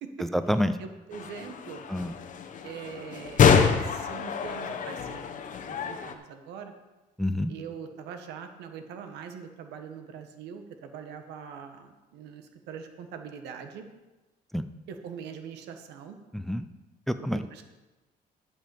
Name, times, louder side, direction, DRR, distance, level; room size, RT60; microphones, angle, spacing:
voice 1, 0.2-0.8 1.9-2.1 7.2-7.5 14.5-14.7 16.3-16.7 17.1-17.6, equal, ahead, 11 dB, 0.5 m, -28 dB
voice 2, 0.8-1.8 2.6-5.2 5.7-6.7 7.5-13.8 14.9-16.2 17.5-17.6, right 7 dB, 85° right, 7 dB, 1.3 m, -42 dB
sound 1, 1.1-6.1, left 6 dB, 50° left, 1.0 m, -26 dB
12.0 x 5.3 x 7.0 m, 1.1 s
cardioid pair, 110°, 17 cm